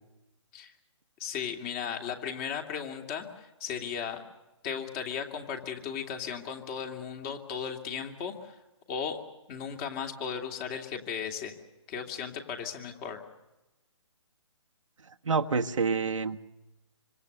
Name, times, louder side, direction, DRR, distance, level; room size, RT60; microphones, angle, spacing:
voice 1, 1.2-4.2 4.6-8.6 8.9-9.2 9.5-11.6 11.9-13.2, left 7 dB, 25° left, 4 dB, 2.7 m, -36 dB
voice 2, 15.2-16.4, right 4 dB, 85° right, 4 dB, 1.4 m, -27 dB
26.0 x 26.0 x 6.8 m, 0.99 s
hypercardioid pair, 150°, 16 cm